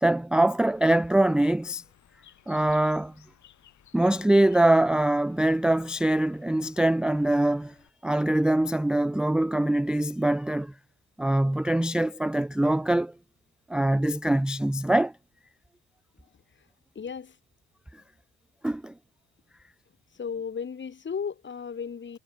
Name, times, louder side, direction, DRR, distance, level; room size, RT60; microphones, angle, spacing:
voice 1, 0.0-1.8 2.5-3.1 3.9-7.7 8.0-10.7 11.2-13.1 13.7-15.1 18.6-18.9, right 1 dB, 5° right, 0.4 m, -23 dB
Bird, 0.7-7.9, left 11 dB, 70° left, 5.9 m, -59 dB
voice 2, 17.0-17.4 20.1-22.2, left 6 dB, 40° left, 2.1 m, -35 dB
cardioid pair, 90°, 30 cm